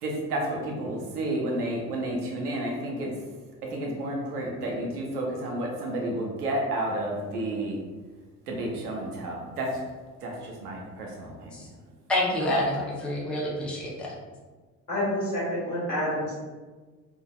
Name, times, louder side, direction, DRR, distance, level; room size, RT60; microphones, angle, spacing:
voice 1, 0.0-3.1 3.6-7.8 8.5-9.8 10.2-11.6, right 1 dB, 80° right, -1 dB, 0.6 m, -31 dB
voice 2, 12.1-14.1, left 1 dB, 5° left, -4 dB, 0.4 m, -28 dB
voice 3, 14.9-16.3, left 1 dB, 80° left, -10 dB, 1.3 m, -28 dB
3.2 x 2.1 x 2.3 m, 1.4 s
figure-of-eight pair, 55°, 45 cm